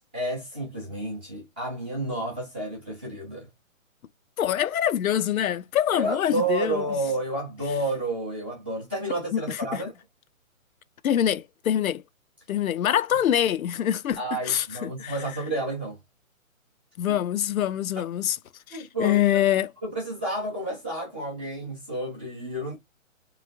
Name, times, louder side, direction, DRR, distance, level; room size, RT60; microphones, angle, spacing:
voice 1, 0.1-3.5 5.9-9.9 14.2-16.0 18.7-19.4 19.8-22.8, right 1 dB, 10° right, 0.5 m, -30 dB
voice 2, 4.4-6.8 9.3-9.8 11.0-12.0 12.5-15.1 17.0-18.4 18.7-19.7, left 11 dB, 75° left, 0.5 m, -25 dB
3.4 x 3.1 x 2.4 m
hypercardioid pair, 160°, 42 cm